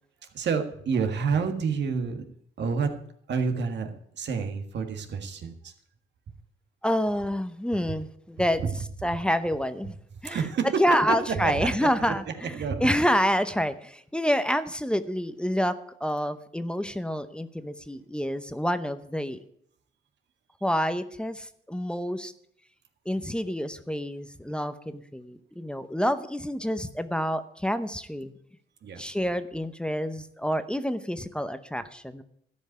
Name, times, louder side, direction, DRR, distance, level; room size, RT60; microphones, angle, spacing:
voice 1, 0.3-2.2 2.6-2.9 3.3-5.7 8.6-8.7 10.2-10.8 11.4-11.7 12.5-12.9 28.8-29.0, right 5 dB, 60° right, 5 dB, 1.7 m, -28 dB
voice 2, 6.8-8.6 9.0-10.0 10.2-19.4 20.6-22.3 23.1-28.3 29.0-32.2, equal, 5° left, 11 dB, 0.8 m, -28 dB
13.0 x 5.4 x 9.3 m, 0.70 s
cardioid pair, 90°, 20 cm